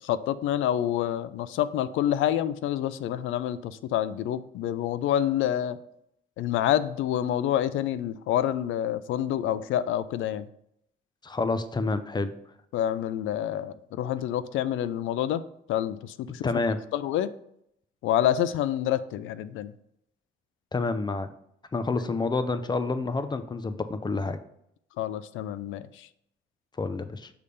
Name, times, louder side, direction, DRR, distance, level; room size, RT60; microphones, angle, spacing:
voice 1, 0.0-5.8 6.4-10.5 12.7-15.4 15.7-16.5 16.9-17.3 18.0-19.7 25.0-26.1, left 11 dB, 85° left, 15 dB, 0.4 m, -27 dB
voice 2, 11.2-12.3 16.4-16.8 20.7-21.3 21.7-24.4 26.8-27.3, left 3 dB, 20° left, 11 dB, 0.6 m, -28 dB
6.8 x 3.3 x 5.4 m, 0.75 s
cardioid pair, 90°, 20 cm